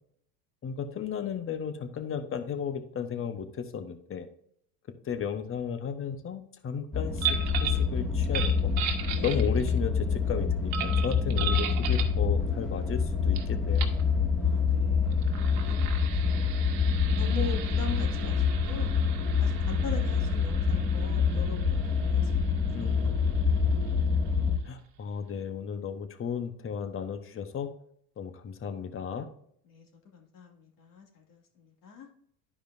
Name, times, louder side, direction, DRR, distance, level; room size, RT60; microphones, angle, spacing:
voice 1, 0.6-4.3 5.0-8.7 9.2-13.8 22.7-23.2 24.6-27.7 28.2-29.3, left 7 dB, 25° left, 9 dB, 1.1 m, -34 dB
sound 1, 6.9-24.6, left 5 dB, ahead, 2.1 m, -26 dB
sound 2, 7.2-7.9 8.2-9.8 10.7-12.2 13.3-13.4 13.7-14.0 15.1-24.4, right 9 dB, 75° right, 1.5 m, -37 dB
voice 2, 14.4-16.6 17.1-19.0 19.4-22.3 22.8-22.9 23.2-23.5 29.7-29.9 30.1-32.1, left 3 dB, 40° left, 1 dB, 2.4 m, -42 dB
12.0 x 5.0 x 2.6 m, 0.67 s
hypercardioid pair, 95°, 48 cm